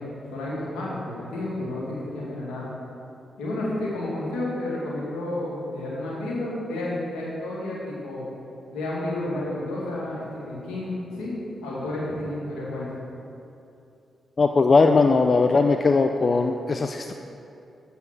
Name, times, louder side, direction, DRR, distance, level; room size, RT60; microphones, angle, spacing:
voice 1, 0.0-2.7 3.4-8.2 8.7-11.3 11.6-12.9, left 1 dB, 85° left, -6 dB, 2.0 m, -31 dB
voice 2, 14.4-17.1, left 4 dB, 50° left, 5 dB, 0.4 m, -19 dB
7.7 x 5.6 x 5.9 m, 2.7 s
supercardioid pair, 40°, 0 cm